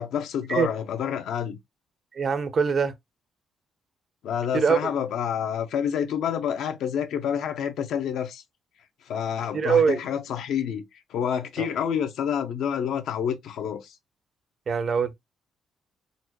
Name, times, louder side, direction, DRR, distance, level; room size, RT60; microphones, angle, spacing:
voice 1, 0.0-1.6 4.2-8.4 9.1-10.8 11.1-13.9, left 8 dB, 80° left, 0.7 m, -28 dB
voice 2, 2.1-2.9 4.5-4.9 9.5-10.0 11.6-11.7 14.7-15.2, right 6 dB, 50° right, 0.6 m, -23 dB
3.9 x 2.2 x 2.9 m
cardioid pair, 90°, 0 cm